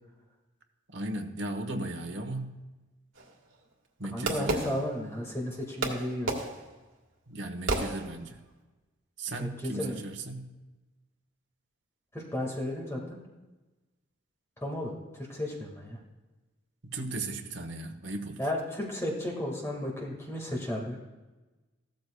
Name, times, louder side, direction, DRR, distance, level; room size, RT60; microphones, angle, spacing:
voice 1, 0.9-2.6 4.0-4.7 7.3-8.4 9.2-10.5 16.8-18.4, right 2 dB, 60° right, 4 dB, 1.1 m, -36 dB
Fireworks, 3.1-5.4 5.8-8.5, right 2 dB, 85° right, 1.7 m, -34 dB
voice 2, 4.1-6.3 9.4-10.0 12.1-13.0 14.6-16.0 18.4-21.0, left 1 dB, 15° left, -1 dB, 1.8 m, -34 dB
15.0 x 13.0 x 2.3 m, 1.1 s
head